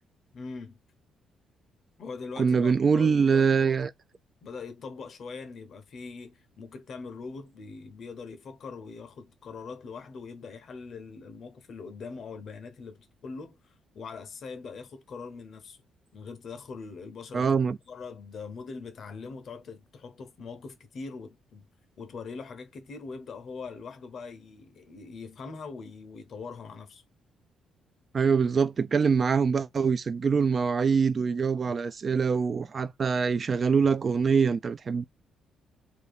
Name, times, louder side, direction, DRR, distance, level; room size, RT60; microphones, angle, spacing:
voice 1, 0.3-0.8 2.0-3.7 4.4-15.8 16.1-17.6 17.9-21.7 22.0-27.0, left 4 dB, 55° left, 0.7 m, -42 dB
voice 2, 2.4-3.9 17.3-17.8 28.1-35.0, right 5 dB, 40° right, 0.3 m, -24 dB
2.7 x 2.3 x 3.3 m
cardioid pair, 90°, 0 cm